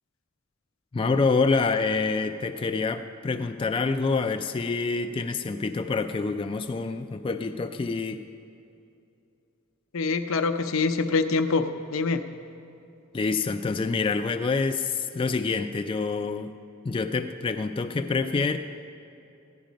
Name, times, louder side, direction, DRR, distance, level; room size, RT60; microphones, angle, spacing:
voice 1, 0.9-8.2 13.1-16.5 16.8-18.6, left 4 dB, 25° left, 8 dB, 0.3 m, -27 dB
voice 2, 9.9-12.2, left 4 dB, 75° left, 7 dB, 0.6 m, -25 dB
14.5 x 10.5 x 5.1 m, 2.7 s
head